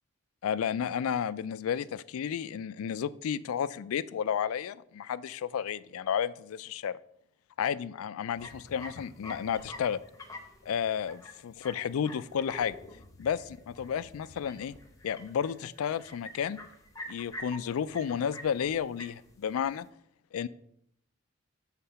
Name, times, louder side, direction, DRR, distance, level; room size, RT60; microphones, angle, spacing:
voice 1, 0.4-7.0 7.6-10.0 10.7-12.8 13.2-14.7 15.0-16.6 17.1-19.9 20.3-20.5, left 8 dB, 80° left, 18 dB, 0.3 m, -32 dB
sound 1, 8.4-19.8, left 1 dB, 15° left, 0.7 m, -47 dB
7.3 x 3.8 x 5.7 m, 0.73 s
head